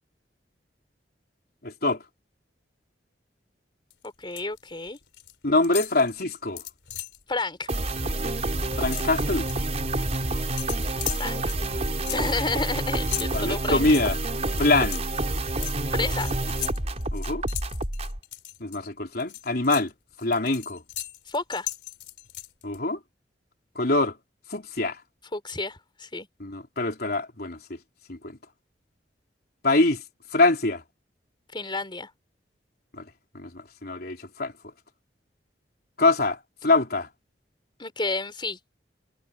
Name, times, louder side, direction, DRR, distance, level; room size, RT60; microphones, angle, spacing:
voice 1, 1.6-2.0 5.4-6.6 8.8-9.5 13.3-14.2 14.6-15.0 17.1-17.4 18.6-19.9 20.2-20.8 22.6-23.0 23.8-24.2 24.5-25.0 26.4-27.8 28.1-28.4 29.6-30.0 30.3-30.8 32.9-33.1 33.3-34.5 36.0-37.1, left 2 dB, 60° left, 3.8 m, -24 dB
sound 1, 3.9-4.6 4.9-5.3 5.6-7.2 7.6-7.8 8.1-9.7 10.6-18.8 19.2-22.8, left 14 dB, 85° left, 3.7 m, -38 dB
voice 2, 4.0-5.0 7.3-7.7 11.1-11.4 12.1-13.8 15.9-16.3 21.3-21.7 25.3-26.3 31.5-32.1 37.8-38.6, left 3 dB, 30° left, 3.6 m, -30 dB
sound 2, 7.7-18.2, right 2 dB, 40° right, 4.5 m, -28 dB
head